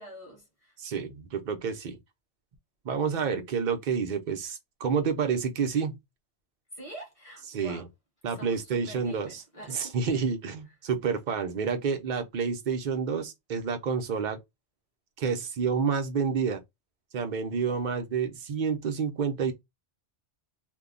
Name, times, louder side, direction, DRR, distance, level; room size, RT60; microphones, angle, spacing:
voice 1, 0.0-0.8 6.7-7.9 8.3-10.3, right 1 dB, 30° left, 1.3 m, -46 dB
voice 2, 0.8-2.0 2.8-6.0 7.5-7.9 8.2-9.4 9.7-14.4 15.2-16.6 17.1-19.5, right 6 dB, 50° right, 0.7 m, -29 dB
2.7 x 2.2 x 3.6 m
omnidirectional pair, 1.2 m